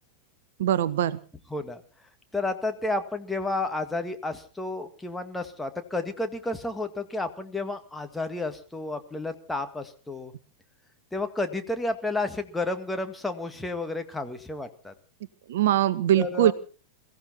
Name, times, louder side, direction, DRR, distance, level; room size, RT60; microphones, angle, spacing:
voice 1, 0.6-1.2 15.5-16.5, right 11 dB, 55° right, 17 dB, 0.8 m, -22 dB
voice 2, 1.5-1.8 2.3-10.3 11.1-14.9 16.2-16.5, left 2 dB, 5° left, 6 dB, 1.9 m, -31 dB
22.5 x 15.0 x 4.2 m, 0.37 s
figure-of-eight pair, 90°, 0 cm